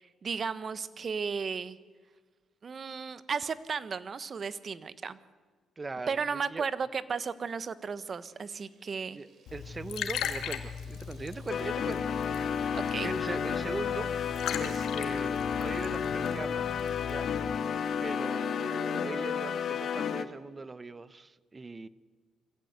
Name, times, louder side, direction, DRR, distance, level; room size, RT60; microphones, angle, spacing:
voice 1, 0.0-1.8 2.6-5.2 6.1-9.2 12.7-13.1, right 5 dB, 45° right, 15 dB, 1.1 m, -34 dB
voice 2, 5.8-6.7 9.1-12.1 12.7-14.3 14.6-16.6 17.0-17.3 18.0-21.9, right 3 dB, 25° right, 16 dB, 0.9 m, -40 dB
sound 1, 6.9-14.9, right 4 dB, 60° right, 3.9 m, -57 dB
Liquid, 9.5-17.6, left 7 dB, 80° left, 1.9 m, -39 dB
sound 2, 11.5-20.2, left 7 dB, 60° left, 1.3 m, -32 dB
23.5 x 15.5 x 8.1 m, 1.4 s
cardioid pair, 90°, 0 cm